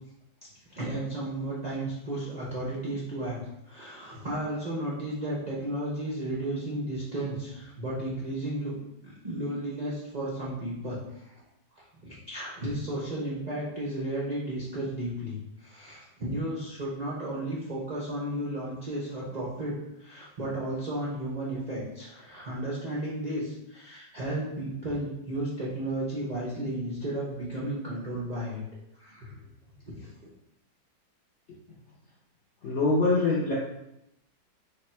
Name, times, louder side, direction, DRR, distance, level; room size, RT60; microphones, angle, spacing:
voice 1, 0.7-3.4 3.7-8.7 9.0-11.0 12.0-28.6 29.0-29.3 30.0-30.1, right 1 dB, 60° right, -7 dB, 0.4 m, -33 dB
voice 2, 32.6-33.5, left 3 dB, 65° left, -7 dB, 0.7 m, -24 dB
3.4 x 2.2 x 4.2 m, 0.85 s
omnidirectional pair, 2.0 m